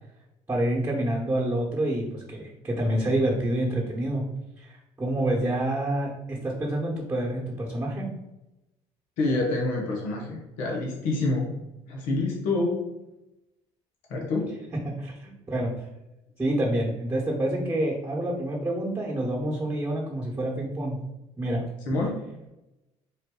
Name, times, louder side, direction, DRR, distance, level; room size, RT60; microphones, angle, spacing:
voice 1, 0.5-4.2 4.6-8.1 14.7-15.7 16.4-21.0 21.4-21.7, right 1 dB, 15° right, -4 dB, 1.2 m, -27 dB
voice 2, 9.2-11.5 11.9-12.9 14.1-14.5 21.9-22.5, left 2 dB, 80° left, -1 dB, 0.9 m, -27 dB
4.2 x 2.5 x 3.8 m, 0.95 s
hypercardioid pair, 60°, 14 cm